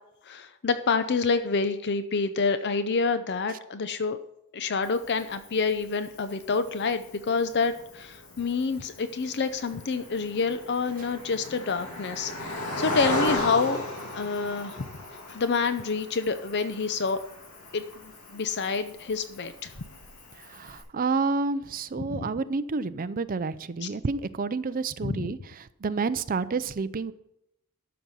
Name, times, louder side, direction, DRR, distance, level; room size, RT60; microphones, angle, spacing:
voice 1, 0.2-4.2 4.5-13.8 14.1-14.9 15.3-17.2 17.7-19.7 22.0-22.2 23.8-23.9 25.0-25.3, left 4 dB, 50° left, 11 dB, 0.6 m, -28 dB
Cricket, 4.8-20.8, left 2 dB, 75° left, 2.5 m, -37 dB
voice 2, 20.4-25.4 25.8-27.1, right 4 dB, 40° right, 13 dB, 0.5 m, -29 dB
13.0 x 6.0 x 5.5 m, 0.81 s
head